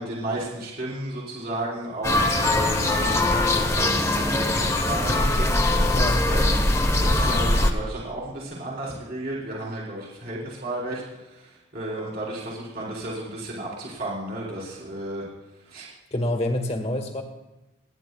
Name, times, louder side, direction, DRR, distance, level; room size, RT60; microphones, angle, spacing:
voice 1, 0.0-6.0 6.3-6.7 7.0-15.3 15.6-15.9, right 1 dB, 45° right, -5 dB, 3.9 m, -33 dB
sound 1, 2.0-7.7, left 2 dB, 15° left, 0.9 m, -21 dB
voice 2, 5.9-6.2 16.1-17.2, left 1 dB, 30° left, 3 dB, 1.7 m, -27 dB
29.0 x 10.0 x 2.3 m, 1.0 s
head